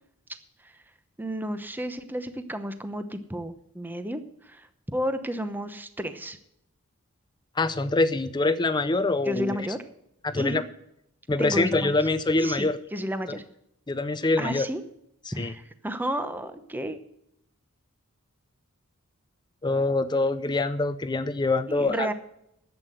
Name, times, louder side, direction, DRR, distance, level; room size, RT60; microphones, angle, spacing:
voice 1, 1.2-6.4 9.3-9.8 10.3-10.6 11.4-11.9 12.4-13.4 14.4-14.8 15.3-17.0 21.7-22.1, equal, 10° right, 9 dB, 0.8 m, -32 dB
voice 2, 7.6-9.7 10.2-10.6 11.3-12.8 13.3-13.4 13.9-14.7 15.4-15.5 19.6-22.1, left 2 dB, 20° left, 12 dB, 0.5 m, -25 dB
11.5 x 8.3 x 7.7 m, 0.77 s
head